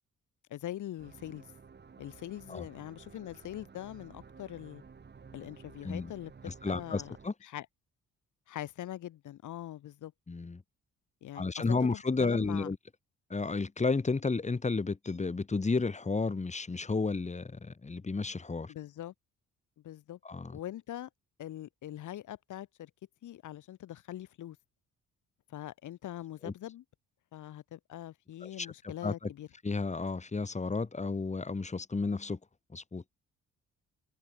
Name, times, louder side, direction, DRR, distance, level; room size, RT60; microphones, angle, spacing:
voice 1, 0.5-1.4 2.0-4.8 5.3-7.1 7.4-7.7 8.5-10.1 11.2-12.7 18.7-19.1 19.8-20.2 20.5-21.1 21.4-22.9 23.2-24.6 25.5-26.8 27.3-29.5, left 12 dB, 80° left, 7.3 m, -42 dB
sound 1, 1.0-7.3, right 5 dB, 35° right, 3.4 m, -53 dB
voice 2, 6.5-7.3 10.3-10.6 11.3-12.8 13.3-18.7 20.2-20.6 26.4-26.5 28.4-28.7 29.0-29.3 29.6-32.4 32.7-33.0, left 4 dB, 25° left, 3.0 m, -32 dB
cardioid pair, 90°, 30 cm